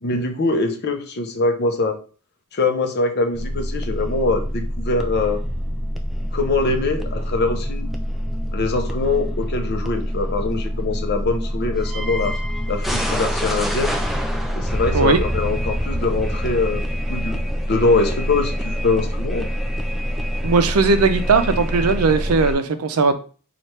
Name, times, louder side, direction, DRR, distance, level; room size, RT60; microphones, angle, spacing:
voice 1, 0.0-2.0 2.5-5.4 6.3-7.9 8.5-12.4 12.7-14.0 14.5-16.8 17.1-17.4 17.7-19.5, left 3 dB, 50° left, 5 dB, 0.6 m, -23 dB
sound 1, 3.3-22.5, equal, ahead, 0.3 m, -25 dB
voice 2, 20.4-23.1, right 4 dB, 75° right, 9 dB, 0.5 m, -18 dB
3.3 x 2.4 x 4.2 m, 0.38 s
head